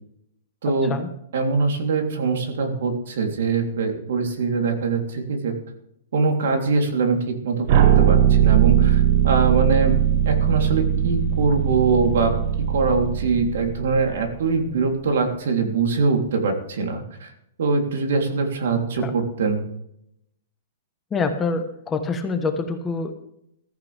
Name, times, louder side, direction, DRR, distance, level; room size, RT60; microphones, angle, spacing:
voice 1, 0.6-1.0 1.3-5.5 6.1-10.0 10.2-12.3 12.7-17.3 17.6-19.6, right 4 dB, 65° right, 4 dB, 3.3 m, -23 dB
sound 1, 7.7-14.6, right 9 dB, 40° right, 1.1 m, -20 dB
voice 2, 21.1-23.1, left 4 dB, 10° left, 6 dB, 1.1 m, -25 dB
15.5 x 14.0 x 3.5 m, 0.76 s
hypercardioid pair, 170°, 0 cm